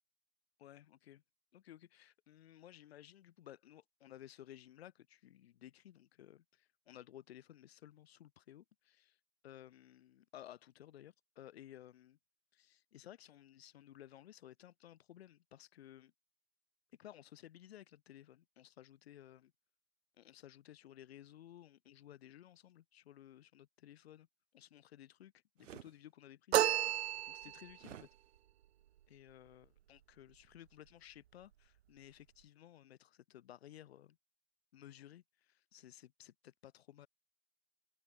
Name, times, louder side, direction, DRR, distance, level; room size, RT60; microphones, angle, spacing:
voice 1, 0.6-1.2 1.5-9.2 9.4-12.2 12.5-16.1 17.0-19.5 20.2-24.3 24.5-28.1 29.1-34.2 34.7-37.1, left 12 dB, 50° left, 5.6 m, -57 dB
sound 1, 25.6-25.9 27.8-28.1, right 10 dB, 65° right, 2.7 m, -52 dB
sound 2, 26.5-27.8, right 12 dB, 50° right, 0.8 m, -32 dB
hypercardioid pair, 180°, 40 cm